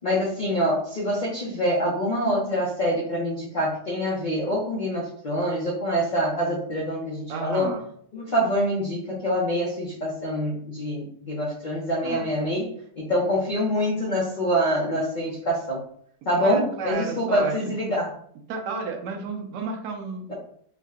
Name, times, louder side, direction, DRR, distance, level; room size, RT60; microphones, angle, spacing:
voice 1, 0.0-7.7 8.1-15.8 16.3-18.1, equal, 50° left, -5 dB, 0.6 m, -25 dB
voice 2, 7.3-7.9 12.0-12.3 16.4-17.7 18.5-20.3, right 4 dB, 85° right, 3 dB, 1.2 m, -32 dB
3.6 x 2.2 x 3.5 m, 0.63 s
omnidirectional pair, 1.7 m